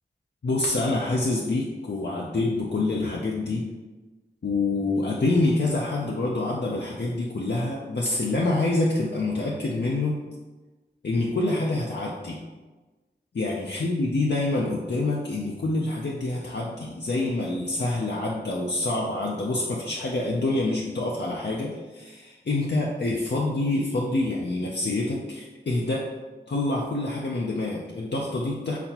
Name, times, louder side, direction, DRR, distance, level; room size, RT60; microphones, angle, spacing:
voice 1, 0.4-3.7 4.4-10.2 11.0-12.4 13.3-26.1 26.5-28.8, left 2 dB, 65° left, -3 dB, 0.5 m, -26 dB
4.3 x 4.1 x 2.9 m, 1.2 s
wide cardioid pair, 60°, 19 cm